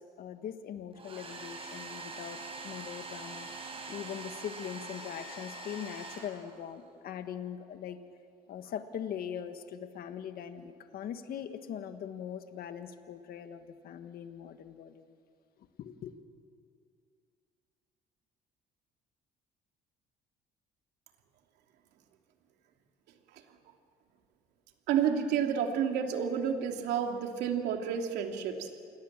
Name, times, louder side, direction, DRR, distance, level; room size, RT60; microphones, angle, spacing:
voice 1, 0.0-8.0 8.5-15.1 15.8-16.1, left 9 dB, 65° left, 8 dB, 1.6 m, -41 dB
Domestic sounds home sounds, 0.9-6.8, right 3 dB, 35° right, 5.9 m, -44 dB
voice 2, 24.9-28.7, right 8 dB, 85° right, 3 dB, 2.7 m, -30 dB
28.5 x 21.0 x 7.5 m, 2.3 s
cardioid pair, 110°, 17 cm